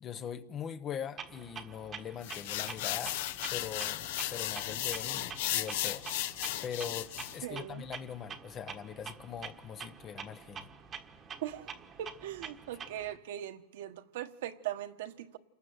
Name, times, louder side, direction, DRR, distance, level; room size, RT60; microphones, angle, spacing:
voice 1, 0.0-3.2 3.5-6.4 6.6-10.7 12.7-12.8, left 8 dB, 20° left, 0.8 m, -42 dB
Clock, 1.2-13.2, right 7 dB, 20° right, 1.3 m, -47 dB
sound 1, 2.2-7.4, left 13 dB, 50° left, 0.9 m, -35 dB
voice 2, 7.4-7.8 11.4-11.7 12.0-15.4, right 12 dB, 55° right, 1.4 m, -40 dB
29.0 x 19.5 x 8.0 m
supercardioid pair, 165°, 0 cm